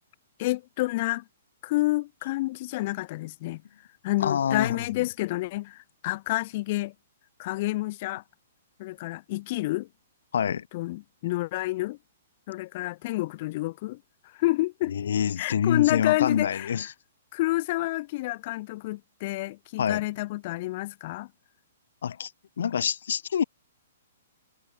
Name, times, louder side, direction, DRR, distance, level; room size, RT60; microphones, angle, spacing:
voice 1, 0.4-1.2 1.6-3.6 4.0-6.9 7.4-8.2 8.8-9.9 10.7-12.0 12.5-15.0 15.4-16.9 17.3-21.3, left 19 dB, 45° left, 0.8 m, -29 dB
voice 2, 4.2-5.0 10.3-10.7 14.9-16.9 19.8-20.1 22.0-22.3 22.6-23.4, left 8 dB, 65° left, 0.4 m, -26 dB
hypercardioid pair, 120°, 0 cm